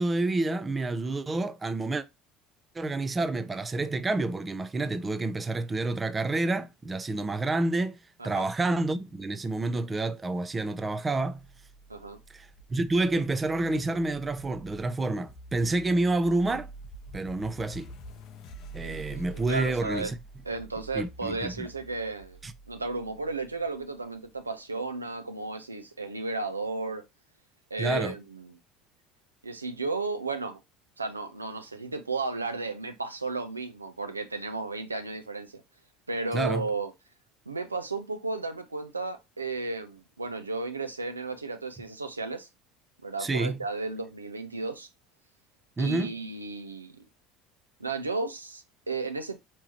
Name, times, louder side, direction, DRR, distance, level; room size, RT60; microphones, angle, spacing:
voice 1, 0.0-2.0 2.7-8.0 8.2-11.4 12.3-16.7 17.1-17.9 18.7-20.2 20.9-21.7 22.4-22.5 27.8-28.1 36.3-36.7 43.2-43.6 45.8-46.1, right 2 dB, 20° right, 0.4 m, -28 dB
sound 1, 11.3-24.4, right 2 dB, 50° left, 0.7 m, -47 dB
voice 2, 18.8-20.1 20.4-22.4 22.7-27.0 27.7-28.6 29.4-30.6 31.0-35.5 36.1-36.9 37.5-42.5 43.0-44.9 45.8-47.0 47.8-49.4, right 3 dB, 85° right, 0.5 m, -34 dB
4.7 x 3.0 x 2.9 m
figure-of-eight pair, 65°, 0 cm